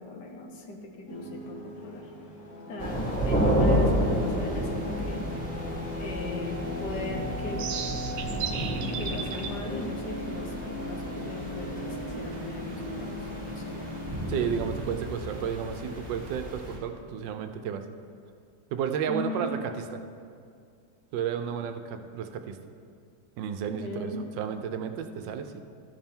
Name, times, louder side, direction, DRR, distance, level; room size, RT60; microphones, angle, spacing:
voice 1, 0.0-2.1 2.7-5.3 6.0-7.6 8.9-13.8 19.1-19.5 23.8-24.2, left 2 dB, 70° left, 3 dB, 1.5 m, -38 dB
sound 1, 1.1-14.6, left 1 dB, 45° left, 1.2 m, -38 dB
sound 2, 2.8-16.8, equal, 5° left, 1.3 m, -31 dB
sound 3, 7.5-13.3, right 7 dB, 65° right, 0.8 m, -39 dB
voice 2, 14.3-17.8 18.7-20.0 21.1-22.6 23.4-25.5, right 7 dB, 90° right, 8 dB, 1.3 m, -32 dB
12.5 x 5.5 x 4.4 m, 2.2 s
omnidirectional pair, 1.9 m